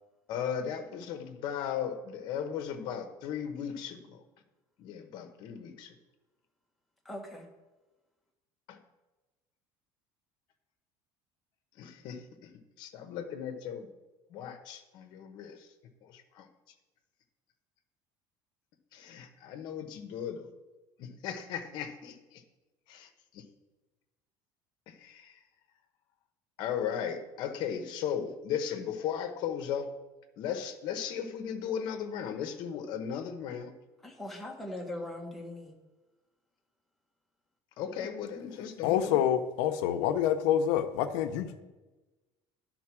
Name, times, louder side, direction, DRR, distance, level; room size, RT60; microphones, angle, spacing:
voice 1, 0.3-4.2 4.8-6.0 8.7-8.8 11.8-12.5 12.8-13.9 14.3-15.7 16.0-16.5 18.9-20.5 21.0-22.4 22.9-23.4 24.9-25.4 26.6-29.9 30.4-33.7 37.8-39.2, left 8 dB, 50° left, 7 dB, 0.9 m, -36 dB
voice 2, 7.0-7.4 34.0-35.7, left 1 dB, ahead, -2 dB, 1.2 m, -40 dB
voice 3, 38.8-41.6, left 10 dB, 85° left, 9 dB, 0.7 m, -27 dB
11.0 x 4.0 x 6.1 m, 1.2 s
cardioid pair, 175°, 10 cm